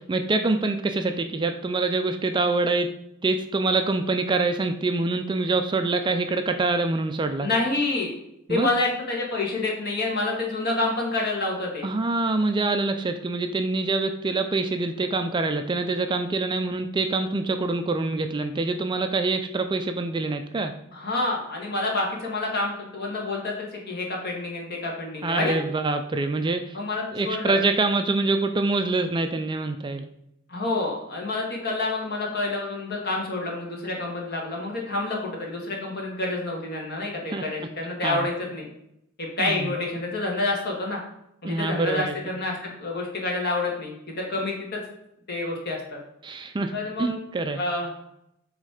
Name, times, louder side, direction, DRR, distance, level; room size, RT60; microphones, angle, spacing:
voice 1, 0.1-2.9 3.2-7.5 8.5-8.7 11.8-20.7 25.2-26.8 27.1-30.1 37.3-37.4 38.0-38.3 39.4-39.7 41.4-42.2 46.2-46.7 47.0-47.6, right 3 dB, 20° right, 7 dB, 0.3 m, -25 dB
voice 2, 7.4-8.1 8.5-11.9 20.9-25.6 26.7-27.6 30.5-38.7 39.2-41.0 41.4-44.8 45.3-46.0 46.7-47.2 47.5-47.9, left 2 dB, 50° left, -1 dB, 1.9 m, -28 dB
7.5 x 3.2 x 4.9 m, 0.79 s
head